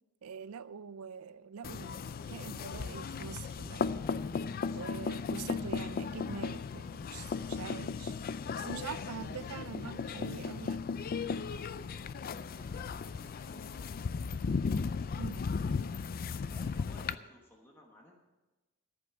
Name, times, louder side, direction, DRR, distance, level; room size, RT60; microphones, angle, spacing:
voice 1, 0.2-4.1 4.7-8.1 8.6-10.8 15.2-15.5, right 6 dB, 85° right, 0.5 m, -44 dB
sound 1, 1.6-17.1, left 5 dB, 45° left, 0.4 m, -36 dB
voice 2, 12.4-14.0 16.5-18.1, left 1 dB, 10° left, 1.2 m, -57 dB
14.5 x 5.3 x 8.9 m
head